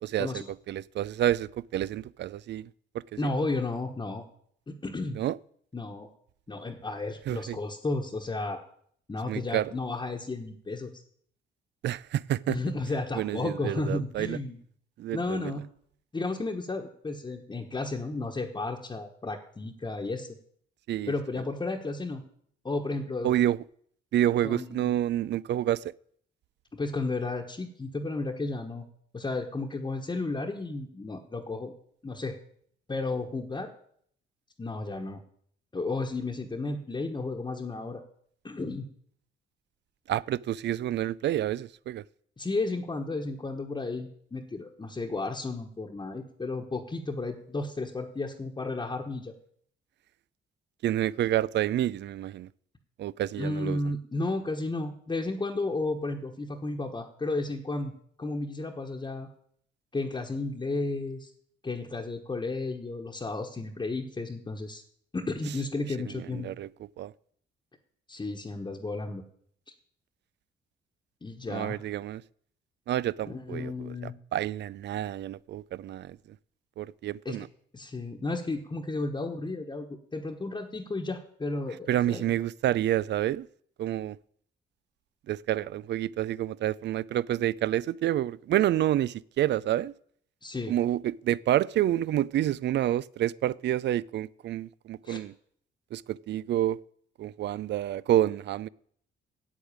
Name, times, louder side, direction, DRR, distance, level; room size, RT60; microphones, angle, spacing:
voice 1, 0.0-2.7 3.2-3.3 5.2-5.4 7.3-7.6 9.3-9.7 11.8-12.6 13.2-14.4 15.0-15.5 20.9-21.1 23.2-23.6 24.1-25.8 40.1-42.0 50.8-52.5 53.0-53.9 66.3-66.7 67.0-67.1 71.5-72.2 72.9-76.2 76.8-77.5 81.9-83.5 83.8-84.2 85.3-89.9 90.7-95.3 95.9-96.8 97.2-98.7, right 12 dB, 60° right, 0.4 m, -28 dB
voice 2, 3.2-4.2 4.7-5.2 5.7-6.1 6.5-8.6 9.1-11.0 12.5-14.6 15.1-15.6 16.1-20.3 21.1-22.2 22.6-23.3 24.4-25.0 26.7-28.8 29.1-31.7 32.0-32.4 32.9-33.7 34.6-35.2 35.7-38.0 38.4-38.9 42.4-49.3 53.4-57.9 58.2-59.3 59.9-61.3 61.6-64.8 65.1-66.5 68.1-69.2 71.2-71.8 73.2-74.1 77.2-77.5 77.7-82.3 90.4-90.7 95.0-95.2, left 3 dB, 20° left, 1.3 m, -33 dB
8.4 x 8.0 x 8.8 m
cardioid pair, 90°, 20 cm